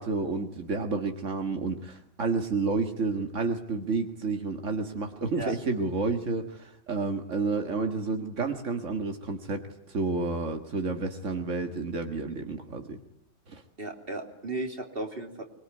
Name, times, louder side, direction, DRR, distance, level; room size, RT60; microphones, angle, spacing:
voice 1, 0.0-13.0 13.5-13.6, right 4 dB, 85° right, 5 dB, 2.1 m, -30 dB
voice 2, 13.8-15.4, right 2 dB, 50° right, 4 dB, 3.3 m, -35 dB
24.5 x 22.0 x 9.5 m, 0.74 s
omnidirectional pair, 1.2 m